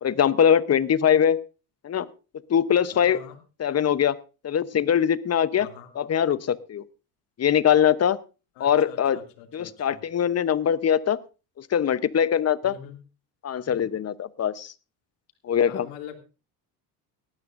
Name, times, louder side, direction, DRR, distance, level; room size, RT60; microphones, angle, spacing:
voice 1, 0.0-1.4 1.8-2.1 2.5-3.2 3.6-4.2 4.4-5.7 6.0-6.8 7.4-8.2 8.6-9.2 9.5-11.2 11.6-12.7 13.4-14.7 15.4-15.9, left 8 dB, 30° left, 16 dB, 0.9 m, -22 dB
voice 2, 2.9-3.4 5.6-5.9 8.6-10.0 12.6-13.0 15.6-16.2, left 9 dB, 70° left, 4 dB, 2.7 m, -44 dB
19.0 x 13.0 x 2.6 m, 0.32 s
hypercardioid pair, 65°, 47 cm